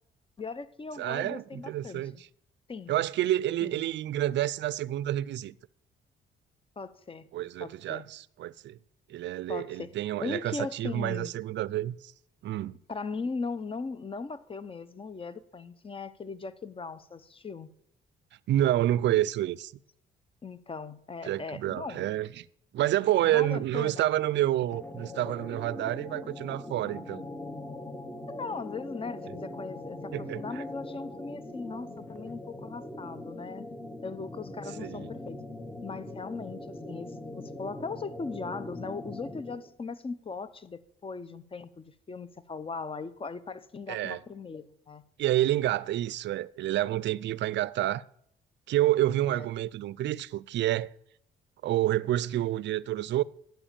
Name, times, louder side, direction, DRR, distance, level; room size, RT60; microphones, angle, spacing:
voice 1, 0.4-2.0 2.7-2.9 3.6-3.8 6.8-7.3 7.6-8.0 9.5-9.9 10.2-11.3 12.9-17.7 20.4-22.1 23.2-24.0 28.3-33.6 34.0-35.4 35.8-45.0 49.3-49.5, left 4 dB, 25° left, 0.7 m, -39 dB
voice 2, 1.0-2.3 2.9-5.6 7.3-8.8 9.1-12.1 12.4-12.7 18.5-19.7 21.2-22.5 22.7-27.2 30.1-30.6 34.8-35.1 43.9-44.2 45.2-48.0 48.7-50.9 51.6-53.2, right 13 dB, 65° right, 0.4 m, -28 dB
sound 1, 24.6-39.7, left 1 dB, 10° left, 1.0 m, -41 dB
9.0 x 7.0 x 7.3 m
cardioid pair, 90°, 20 cm